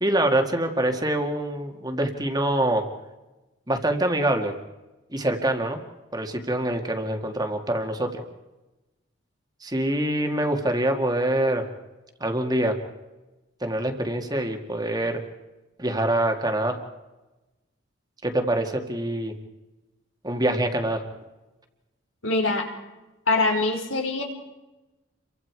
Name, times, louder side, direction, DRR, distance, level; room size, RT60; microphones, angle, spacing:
voice 1, 0.0-2.8 3.7-4.5 5.1-5.8 6.1-8.2 9.6-11.6 12.2-12.7 13.6-15.2 15.8-16.8 18.2-19.3 20.2-21.0, right 1 dB, 20° right, 4 dB, 2.1 m, -25 dB
voice 2, 22.2-22.7 23.3-24.2, left 2 dB, 85° left, 3 dB, 4.7 m, -23 dB
29.5 x 24.0 x 4.8 m, 1.1 s
head